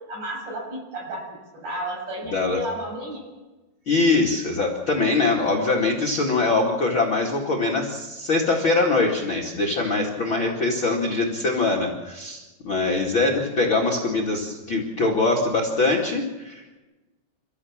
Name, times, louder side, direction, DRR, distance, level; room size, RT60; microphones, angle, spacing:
voice 1, 0.0-3.2 9.9-10.1, right 1 dB, 45° right, 0 dB, 8.4 m, -33 dB
voice 2, 3.9-16.8, left 3 dB, 35° left, 0 dB, 2.4 m, -23 dB
30.0 x 14.0 x 7.4 m, 1.1 s
omnidirectional pair, 4.8 m